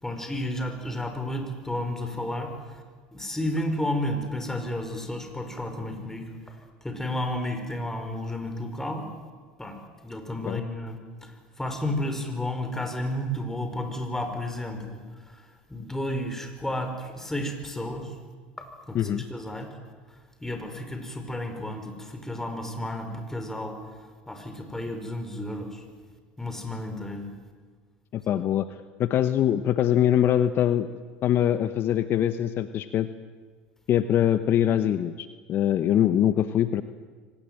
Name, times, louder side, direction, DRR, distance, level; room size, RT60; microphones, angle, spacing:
voice 1, 0.0-2.8 3.1-6.6 6.8-9.1 9.6-15.0 15.3-15.4 15.7-18.2 18.6-19.7 20.4-23.8 24.3-25.8 26.4-27.3 28.3-28.4, left 1 dB, 10° left, 6 dB, 5.2 m, -32 dB
voice 2, 28.1-30.9 31.2-33.1 33.9-36.8, left 11 dB, 50° left, 12 dB, 1.0 m, -23 dB
24.5 x 19.0 x 9.2 m, 1.5 s
hypercardioid pair, 90°, 5 cm